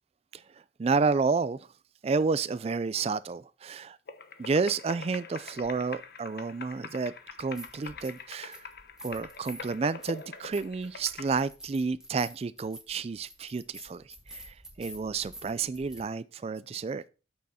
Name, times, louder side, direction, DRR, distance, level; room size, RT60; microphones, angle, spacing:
voice 1, 0.3-1.7 2.0-4.0 4.4-7.1 7.4-8.6 9.0-17.0, right 4 dB, 35° right, 0.3 m, -30 dB
sound 1, 4.1-11.3, left 4 dB, 60° left, 0.9 m, -44 dB
sound 2, 7.3-8.2 8.5-16.0, right 1 dB, 5° right, 1.4 m, -49 dB
8.5 x 6.3 x 4.2 m
head